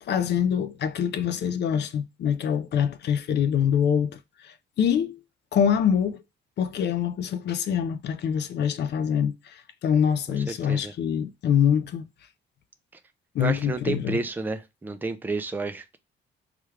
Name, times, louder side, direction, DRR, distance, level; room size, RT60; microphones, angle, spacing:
voice 1, 0.0-5.2 5.5-6.2 6.6-12.1 13.3-14.2, left 8 dB, 60° left, 0.4 m, -25 dB
voice 2, 10.5-10.9 13.4-16.0, right 3 dB, 10° right, 0.4 m, -31 dB
3.3 x 2.3 x 3.1 m
cardioid pair, 90°, 20 cm